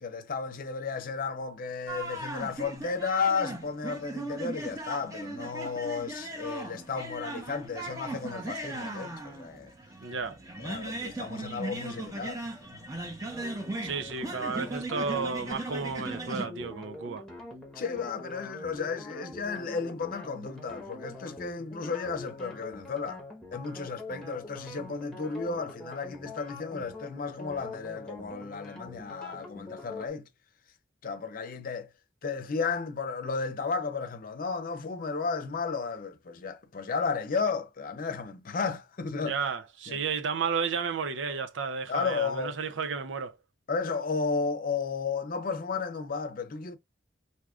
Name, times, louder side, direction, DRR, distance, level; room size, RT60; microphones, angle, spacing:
voice 1, 0.0-9.7 10.6-12.4 12.7-12.9 17.7-23.2 23.5-30.3 31.0-31.9 32.2-39.4 39.9-40.0 41.9-42.6 43.7-46.8, left 5 dB, 50° left, 0.6 m, -33 dB
sound 1, 1.9-16.5, right 2 dB, 20° right, 0.9 m, -38 dB
voice 2, 10.0-10.4 13.8-17.2 39.2-43.3, right 5 dB, 90° right, 0.6 m, -32 dB
sound 2, 13.3-30.1, left 2 dB, 5° left, 1.1 m, -44 dB
4.8 x 2.7 x 2.4 m
head